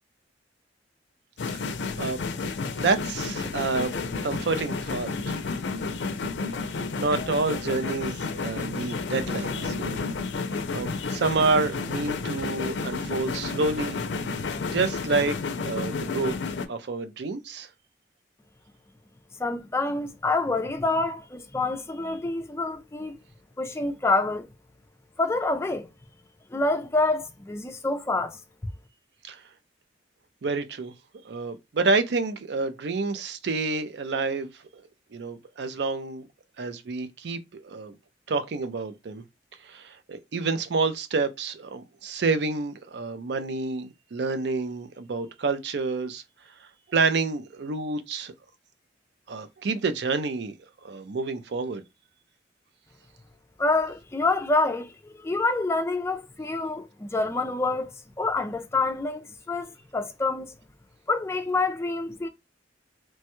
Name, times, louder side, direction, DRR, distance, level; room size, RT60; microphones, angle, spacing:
sound 1, 1.4-16.7, left 4 dB, 75° left, 0.4 m, -31 dB
voice 1, 2.8-5.3 5.7-5.8 7.0-10.0 10.7-14.0 14.7-16.3 16.7-17.7 29.2-29.4 30.4-30.9 31.2-34.8 35.1-36.3 36.6-38.0 38.3-39.2 39.6-46.2 46.9-48.3 49.3-50.5 50.8-51.8, right 3 dB, 65° right, 0.4 m, -28 dB
voice 2, 19.4-23.1 23.6-24.5 25.2-25.9 26.5-28.4 53.6-57.9 58.2-60.5 61.1-62.3, left 3 dB, 15° left, 0.3 m, -27 dB
3.0 x 2.2 x 2.9 m
head